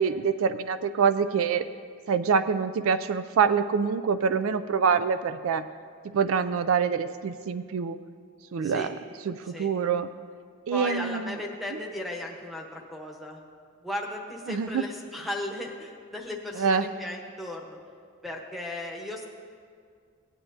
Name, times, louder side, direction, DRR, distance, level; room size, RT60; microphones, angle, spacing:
voice 1, 0.0-1.6 2.1-5.6 6.1-8.0 8.5-8.9 9.3-10.1 10.7-11.4 11.7-11.8 14.5-14.9 16.5-16.9, right 6 dB, 65° right, 11 dB, 0.3 m, -25 dB
voice 2, 8.6-8.9 9.5-9.7 10.7-13.4 13.8-17.8 18.2-19.2, left 1 dB, ahead, -2 dB, 0.9 m, -36 dB
17.0 x 9.8 x 2.7 m, 2.1 s
head